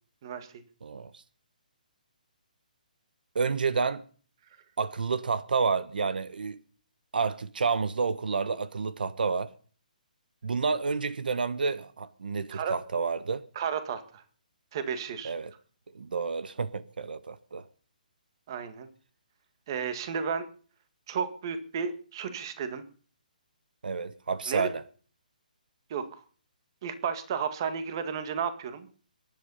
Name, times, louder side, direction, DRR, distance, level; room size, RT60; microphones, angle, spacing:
voice 1, 0.8-1.2 3.3-4.0 4.8-6.6 7.1-9.5 10.4-13.4 15.2-15.5 15.9-17.6 23.8-24.8, right 5 dB, 75° right, 1.3 m, -29 dB
voice 2, 13.6-14.2 14.7-15.3 18.5-18.9 19.7-20.5 21.1-22.8 24.5-24.7 25.9-26.2 26.8-28.9, right 6 dB, 30° right, 1.8 m, -33 dB
23.5 x 11.0 x 5.5 m
hypercardioid pair, 175°, 5 cm